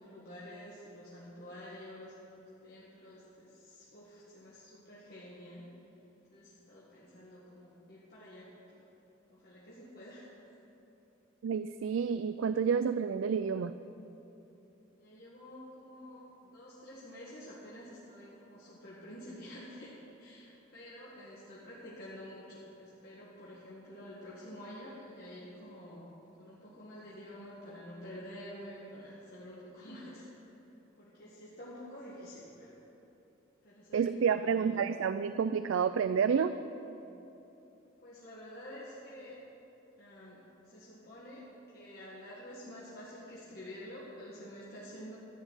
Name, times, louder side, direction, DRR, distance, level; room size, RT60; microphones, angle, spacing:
voice 1, 0.0-2.1 2.6-5.7 6.3-8.5 8.8-8.9 9.3-10.3 15.0-30.3 30.9-32.8 33.6-34.7 38.0-39.4 40.0-45.2, equal, 50° left, -8 dB, 1.8 m, -49 dB
voice 2, 11.4-13.7 33.9-36.5, right 6 dB, 80° right, 12 dB, 0.3 m, -29 dB
13.0 x 7.1 x 8.7 m, 3.0 s
head